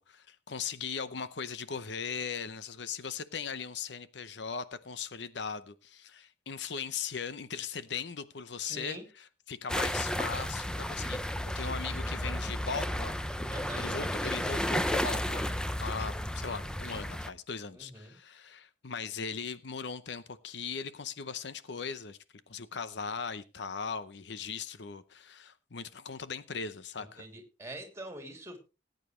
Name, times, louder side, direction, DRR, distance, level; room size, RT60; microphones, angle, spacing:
voice 1, 0.0-13.1 13.8-15.5 15.8-22.2 22.5-27.3, left 6 dB, 65° left, 0.7 m, -39 dB
voice 2, 8.6-9.0 13.5-13.9 17.7-18.2 27.0-28.6, right 1 dB, 15° right, 2.9 m, -44 dB
sound 1, 9.7-17.3, left 1 dB, 5° left, 0.6 m, -33 dB
19.0 x 9.1 x 3.2 m
head